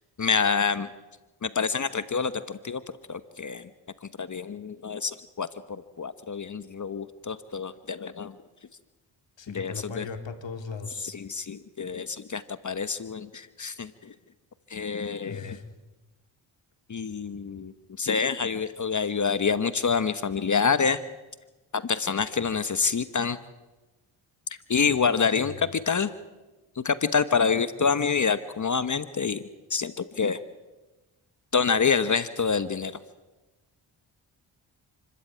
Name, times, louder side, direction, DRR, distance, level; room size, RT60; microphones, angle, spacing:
voice 1, 0.2-0.9 1.4-2.8 3.1-3.7 4.0-8.4 9.5-10.1 11.0-14.1 14.7-15.6 16.9-21.0 21.7-23.4 24.7-26.1 26.8-29.4 29.7-30.4 31.5-33.0, left 5 dB, 40° left, 13 dB, 1.2 m, -27 dB
voice 2, 9.4-11.1 15.2-15.6 25.4-25.7, left 5 dB, 65° left, 6 dB, 3.4 m, -38 dB
29.0 x 13.5 x 9.3 m, 1.1 s
supercardioid pair, 55°, 47 cm